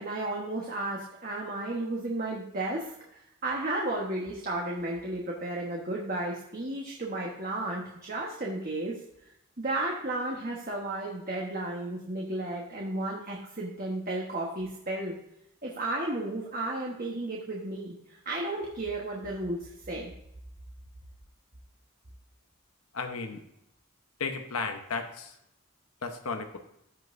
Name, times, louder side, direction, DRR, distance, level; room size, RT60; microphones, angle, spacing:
voice 1, 0.0-8.9 9.6-15.1 15.6-20.1, right 2 dB, 40° right, -2 dB, 1.2 m, -33 dB
voice 2, 22.9-23.4 24.2-25.3 26.0-26.6, left 4 dB, 90° left, 6 dB, 1.0 m, -34 dB
14.0 x 5.4 x 2.6 m, 0.80 s
head